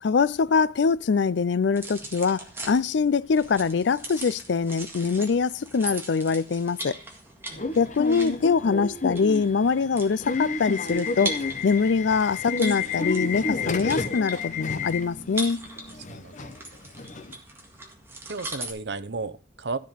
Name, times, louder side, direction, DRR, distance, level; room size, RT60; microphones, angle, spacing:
voice 1, 0.0-7.0 7.8-15.6, left 5 dB, 80° left, 0.4 m, -23 dB
sound 1, 1.7-18.7, right 2 dB, 15° right, 1.9 m, -40 dB
Subway metro underground / Alarm, 7.5-17.3, left 3 dB, 45° left, 0.8 m, -31 dB
voice 2, 16.1-16.5 18.3-19.8, right 3 dB, 75° right, 0.7 m, -34 dB
13.5 x 5.3 x 5.7 m
head